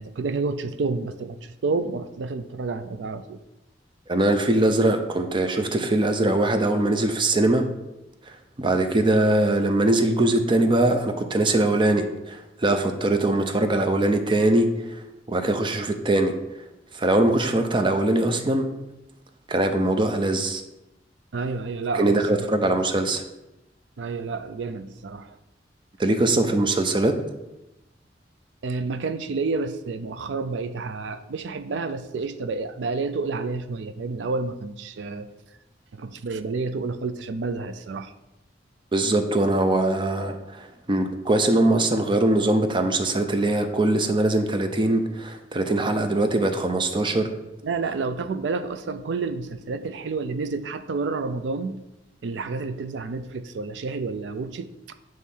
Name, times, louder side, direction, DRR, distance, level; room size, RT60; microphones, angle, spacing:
voice 1, 0.0-1.4 1.6-3.4 21.3-22.5 24.0-25.3 28.6-35.3 35.9-38.1 47.6-51.8 52.2-54.9, right 4 dB, 80° right, 10 dB, 0.4 m, -29 dB
voice 2, 4.1-7.7 8.3-15.0 15.3-16.3 16.9-18.7 19.5-20.6 22.0-23.2 26.0-27.1 38.9-47.3, right 2 dB, 30° right, 6 dB, 0.6 m, -22 dB
6.4 x 3.2 x 5.4 m, 0.96 s
head